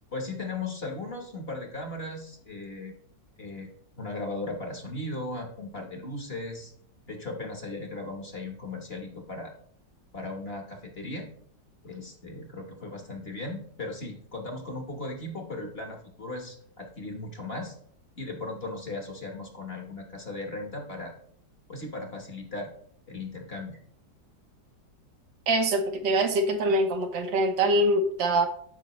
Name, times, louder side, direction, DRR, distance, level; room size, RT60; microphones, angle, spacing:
voice 1, 0.1-2.9 3.4-3.7 4.0-6.7 7.1-9.5 10.1-11.3 11.8-17.8 18.2-21.1 21.7-22.7 23.1-23.8, left 2 dB, 40° left, 3 dB, 1.3 m, -37 dB
voice 2, 25.5-28.5, right 1 dB, 85° right, 5 dB, 1.7 m, -24 dB
13.0 x 5.1 x 3.1 m, 0.62 s
omnidirectional pair, 1.9 m